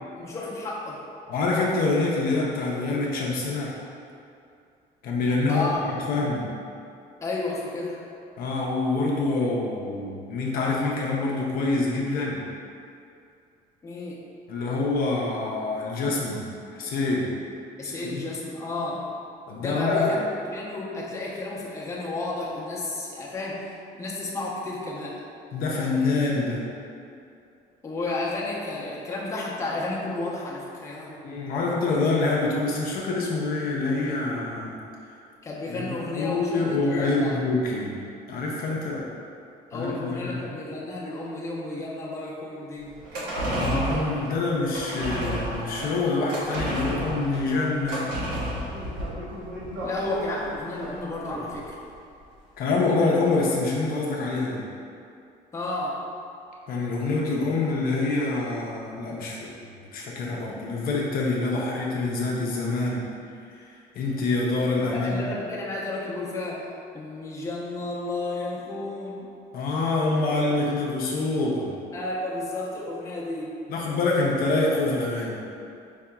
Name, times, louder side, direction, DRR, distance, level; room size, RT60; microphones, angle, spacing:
voice 1, 0.2-1.0 5.5-5.8 7.2-8.0 13.8-14.2 17.8-19.1 19.6-25.2 27.8-31.2 35.4-37.4 39.7-42.9 49.8-51.8 55.5-56.0 64.9-69.3 71.9-73.5, left 2 dB, 15° left, -5 dB, 0.6 m, -32 dB
voice 2, 1.3-3.8 5.0-6.5 8.4-12.5 14.5-16.5 16.7-17.3 17.8-18.2 19.5-20.1 25.5-26.7 31.2-34.8 35.7-38.0 38.3-39.1 39.7-40.4 43.5-48.1 52.6-54.6 56.7-63.1 63.5-65.2 69.5-71.7 73.7-75.4, left 3 dB, 60° left, -3 dB, 0.5 m, -26 dB
sound 1, 42.9-51.6 51.9-52.0, right 1 dB, 90° right, 0.9 m, -31 dB
4.8 x 2.8 x 2.2 m, 2.5 s
cardioid pair, 115°, 17 cm